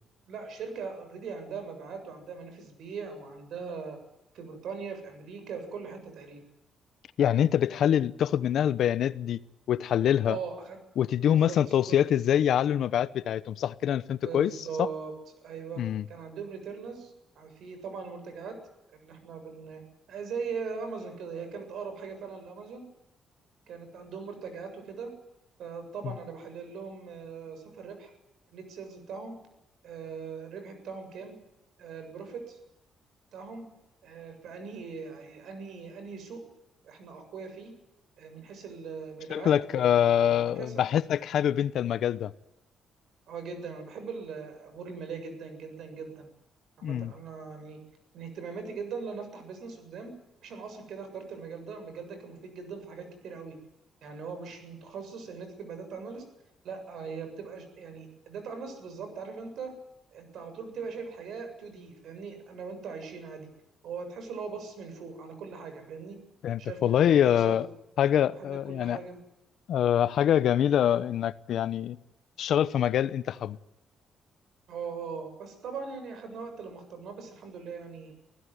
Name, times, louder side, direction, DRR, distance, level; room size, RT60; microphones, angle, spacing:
voice 1, 0.3-4.0 4.3-6.4 10.3-10.8 11.3-11.6 11.9-12.0 14.2-15.1 15.4-15.8 16.1-18.6 18.9-19.8 20.1-22.9 23.7-25.1 25.6-28.1 28.5-29.4 29.8-31.3 31.8-32.6 33.3-33.7 34.0-36.4 36.8-37.7 38.2-40.8 43.3-46.3 46.8-47.8 48.1-50.1 50.4-53.6 54.0-56.2 56.6-59.7 60.1-63.5 63.8-66.2 66.6-67.6 68.4-69.2 74.7-78.1, right 5 dB, 70° right, 7.5 m, -40 dB
voice 2, 7.2-9.4 9.7-10.4 11.0-14.9 15.8-16.0 39.3-42.3 46.8-47.1 66.4-67.7 68.0-69.0 69.7-72.0 72.4-73.6, left 10 dB, 70° left, 0.9 m, -25 dB
25.0 x 16.0 x 9.5 m
cardioid pair, 90°, 0 cm